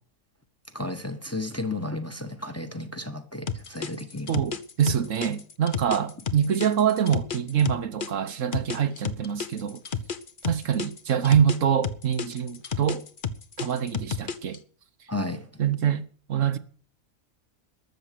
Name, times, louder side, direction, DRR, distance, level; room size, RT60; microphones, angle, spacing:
voice 1, 0.7-4.4 15.1-15.5, left 2 dB, 10° left, 1.2 m, -33 dB
sound 1, 3.5-8.1 8.5-11.6 11.8-14.6, left 6 dB, 40° left, 1.0 m, -31 dB
voice 2, 4.3-9.8 10.5-13.0 13.6-14.6 15.6-16.6, right 8 dB, 65° right, 1.3 m, -25 dB
13.5 x 7.7 x 9.3 m
omnidirectional pair, 1.5 m